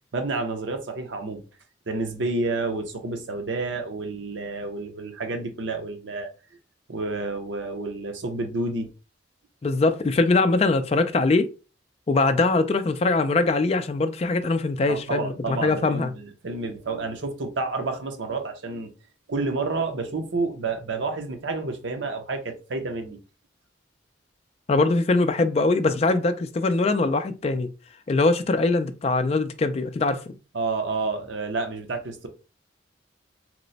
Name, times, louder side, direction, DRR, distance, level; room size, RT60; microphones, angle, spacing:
voice 1, 0.1-1.4 1.9-6.3 6.9-8.9 14.9-18.9 19.3-23.2 30.5-32.3, right 3 dB, 80° right, 0.7 m, -29 dB
voice 2, 9.6-11.5 12.1-16.1 24.7-27.7 28.1-30.3, left 3 dB, 35° left, 0.3 m, -22 dB
3.0 x 2.0 x 3.9 m
head